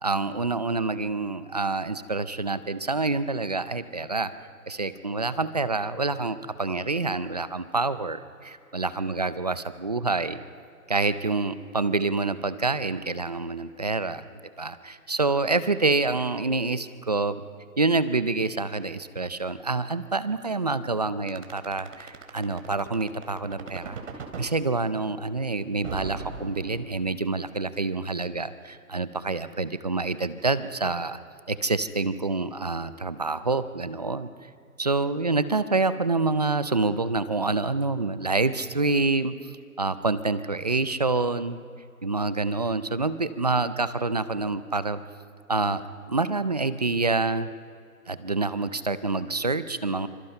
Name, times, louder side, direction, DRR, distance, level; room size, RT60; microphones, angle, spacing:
voice 1, 0.0-4.3 4.7-10.4 10.9-14.3 14.6-17.4 17.8-24.0 24.4-31.2 31.5-34.3 34.8-39.5 39.8-41.6 42.0-45.0 45.5-47.5 48.1-50.1, right 3 dB, 30° right, 13 dB, 0.5 m, -27 dB
sound 1, 21.3-24.5 25.8-27.2, right 5 dB, 50° right, 3.7 m, -38 dB
26.5 x 26.0 x 5.4 m, 2.5 s
hypercardioid pair, 160°, 45 cm